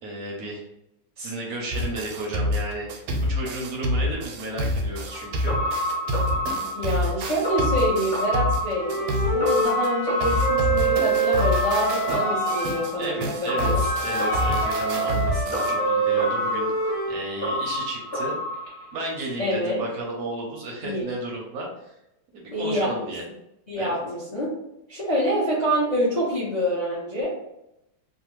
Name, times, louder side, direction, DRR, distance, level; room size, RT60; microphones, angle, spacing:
voice 1, 0.0-0.6 1.2-3.0 3.3-5.5 13.0-18.3 18.9-21.9 22.3-23.2 23.8-24.0, right 1 dB, 70° right, -2 dB, 0.9 m, -33 dB
sound 1, 1.7-9.9 10.2-15.7, left 1 dB, 90° right, 1.4 m, -28 dB
sound 2, 5.1-19.3 19.5-19.6, left 1 dB, 35° left, 1.2 m, -29 dB
voice 2, 6.7-13.8 19.4-19.8 20.8-21.0 22.5-23.1 23.7-24.5 24.9-27.3, equal, 75° left, -8 dB, 0.4 m, -26 dB
Wind instrument woodwind instrument, 8.8-12.9 13.8-17.2, right 4 dB, 60° left, 1.0 m, -26 dB
3.2 x 2.1 x 3.0 m, 0.85 s
omnidirectional pair, 2.2 m